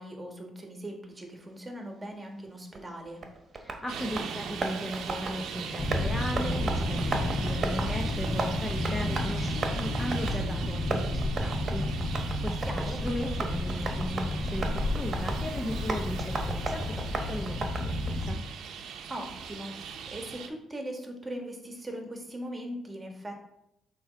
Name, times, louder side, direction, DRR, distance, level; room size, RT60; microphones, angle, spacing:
voice 1, 0.0-3.2 12.6-13.0 19.1-23.5, right 1 dB, 20° right, 3 dB, 1.4 m, -40 dB
Tap, 2.7-18.2, right 3 dB, 45° right, 1.1 m, -37 dB
voice 2, 3.6-18.4, equal, 10° left, 1 dB, 0.8 m, -37 dB
Traffic noise roadway noise, 3.9-20.5, right 6 dB, 75° right, 0.7 m, -40 dB
sound 1, 5.8-18.3, left 1 dB, 45° left, 1.4 m, -31 dB
6.9 x 3.1 x 5.0 m, 0.82 s
cardioid pair, 90°, 0 cm